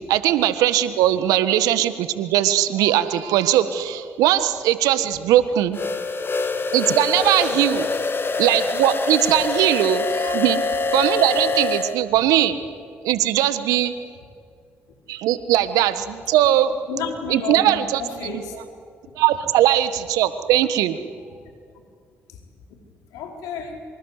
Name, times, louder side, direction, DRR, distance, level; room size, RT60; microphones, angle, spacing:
voice 1, 0.1-5.8 6.7-7.9 8.4-10.6 10.9-12.6 13.0-13.9 15.1-16.7 17.3-18.3 19.2-21.0, right 12 dB, 75° right, 12 dB, 1.5 m, -20 dB
sound 1, 5.7-12.0, left 3 dB, 35° left, 2.3 m, -24 dB
voice 2, 16.9-18.6 21.2-21.4 22.3-22.4 23.1-23.8, left 5 dB, 75° left, 2 dB, 4.5 m, -32 dB
26.0 x 25.5 x 8.3 m, 2.1 s
hypercardioid pair, 45°, 6 cm